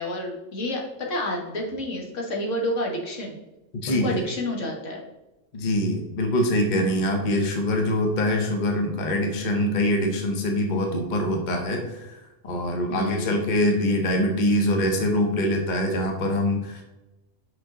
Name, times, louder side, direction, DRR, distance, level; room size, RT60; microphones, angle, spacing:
voice 1, 0.0-3.4 3.9-5.0 12.9-13.4, left 1 dB, 75° left, 0 dB, 1.7 m, -29 dB
voice 2, 3.8-4.2 5.5-12.2 12.4-16.8, left 1 dB, 40° left, 3 dB, 1.0 m, -24 dB
5.8 x 5.5 x 3.7 m, 0.96 s
omnidirectional pair, 1.3 m